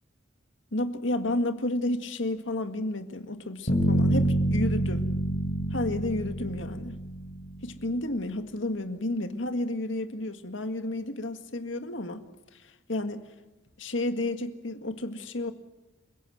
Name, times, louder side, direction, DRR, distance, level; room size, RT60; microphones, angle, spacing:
voice 1, 0.7-5.1 5.7-7.0 7.6-12.2 12.9-13.3 13.8-15.5, left 1 dB, 70° left, 7 dB, 1.9 m, -31 dB
Bass guitar, 3.7-7.7, right 1 dB, 45° left, 6.6 m, -27 dB
29.0 x 17.0 x 8.0 m, 1.0 s
head